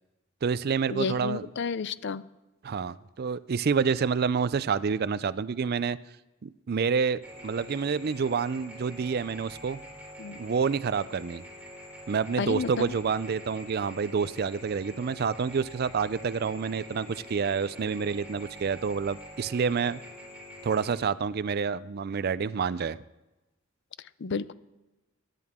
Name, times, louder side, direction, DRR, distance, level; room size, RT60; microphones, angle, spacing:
voice 1, 0.4-1.5 2.6-6.0 6.4-9.8 10.3-11.4 12.1-20.0 20.6-23.0, right 5 dB, 50° right, 16 dB, 0.4 m, -28 dB
voice 2, 0.9-2.2 10.2-10.4 12.4-12.9 24.2-24.5, left 5 dB, 55° left, 16 dB, 0.5 m, -31 dB
sound 1, 7.2-21.0, equal, 5° right, 4.2 m, -46 dB
23.5 x 11.0 x 3.6 m, 1.0 s
head